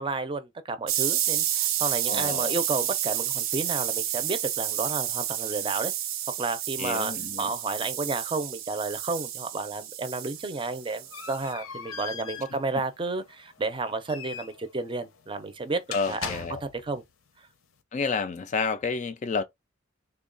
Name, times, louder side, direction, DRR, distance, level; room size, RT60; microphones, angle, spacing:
voice 1, 0.0-5.9 6.4-7.1 7.4-15.8 16.1-17.0, right 3 dB, 25° right, 0.5 m, -31 dB
sound 1, 0.9-11.5, right 11 dB, 80° right, 0.6 m, -30 dB
voice 2, 2.1-2.6 6.8-7.5 15.9-16.6 17.9-19.4, left 4 dB, 35° left, 0.3 m, -30 dB
sound 2, 10.4-17.0, left 6 dB, 90° left, 0.6 m, -41 dB
3.4 x 2.2 x 3.8 m
head